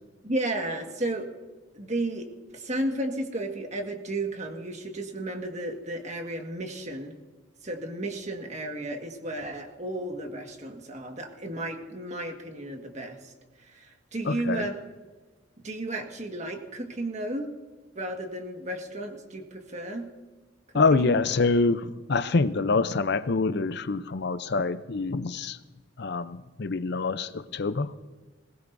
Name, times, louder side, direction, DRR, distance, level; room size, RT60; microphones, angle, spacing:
voice 1, 0.2-1.3 1.7-7.1 7.6-13.3 13.7-14.7 15.6-17.5 17.9-20.1 21.0-21.2, right 1 dB, 40° right, 4 dB, 1.7 m, -33 dB
voice 2, 14.2-14.6 20.7-25.6 26.0-27.9, left 3 dB, 65° left, 13 dB, 0.6 m, -26 dB
20.5 x 18.0 x 2.7 m, 1.3 s
head